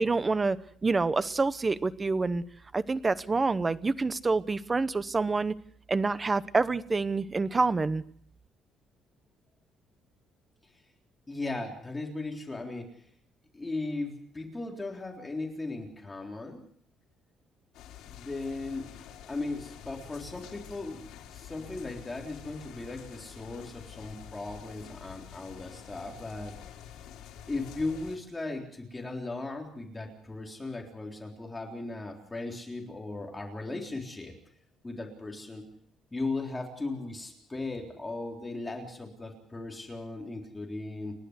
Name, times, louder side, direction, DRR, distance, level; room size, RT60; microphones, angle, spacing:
voice 1, 0.0-2.4 2.7-5.6 5.9-8.0, right 3 dB, 20° right, 15 dB, 0.9 m, -27 dB
voice 2, 11.3-13.0 13.5-16.6 18.1-18.9 19.3-26.6 27.5-34.3 34.8-35.7 36.1-41.1, left 2 dB, 15° left, 1 dB, 3.7 m, -37 dB
sound 1, 17.7-28.2, left 10 dB, 80° left, 4.2 m, -48 dB
30.0 x 12.0 x 8.1 m, 0.64 s
cardioid pair, 150°, 0 cm